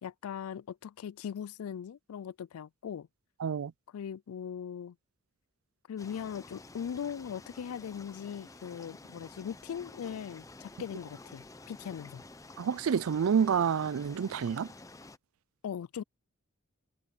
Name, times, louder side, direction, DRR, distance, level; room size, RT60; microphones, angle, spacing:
voice 1, 0.0-3.1 3.9-5.0 5.9-12.2 15.6-16.0, left 8 dB, 85° left, 0.3 m, -40 dB
voice 2, 3.4-3.7 12.6-14.7, right 7 dB, 70° right, 0.4 m, -28 dB
sound 1, 6.0-15.2, left 2 dB, 15° left, 0.6 m, -51 dB
head